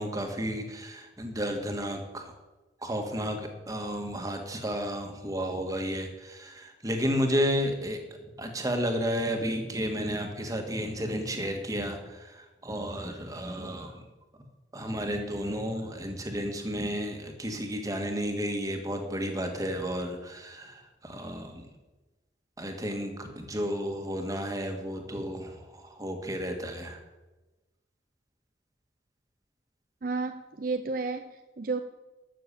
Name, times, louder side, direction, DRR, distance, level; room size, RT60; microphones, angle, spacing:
voice 1, 0.0-2.3 2.8-8.0 8.4-14.1 14.7-21.6 22.6-27.0, equal, 20° right, 4 dB, 1.7 m, -32 dB
voice 2, 30.0-31.8, right 4 dB, 50° right, 8 dB, 0.6 m, -32 dB
12.5 x 7.0 x 8.4 m, 1.1 s
head